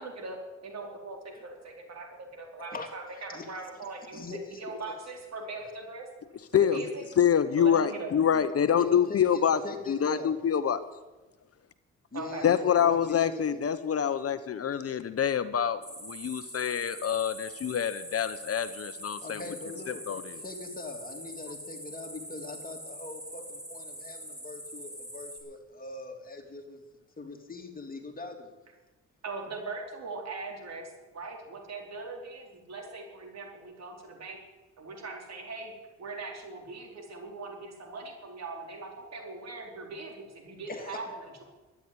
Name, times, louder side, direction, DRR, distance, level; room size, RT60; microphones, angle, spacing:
voice 1, 0.0-6.1 6.5-7.0 7.6-8.1 12.1-12.4 29.2-34.4 34.8-35.7 36.0-41.4, right 3 dB, 60° right, 1 dB, 4.5 m, -40 dB
voice 2, 2.6-2.9 3.1-3.6 4.1-4.9 6.7-6.9 8.8-10.3 12.1-13.4 19.2-20.0 20.3-26.8 27.2-28.5 40.7-41.0, left 3 dB, 30° left, 2 dB, 3.2 m, -42 dB
voice 3, 7.2-9.6 9.9-10.8 12.4-19.4 19.9-20.2, left 8 dB, 50° left, 12 dB, 0.9 m, -26 dB
sound 1, 15.8-25.4, equal, 10° right, 6.0 m, -43 dB
12.5 x 10.5 x 9.7 m, 1.2 s
cardioid pair, 75°, 30 cm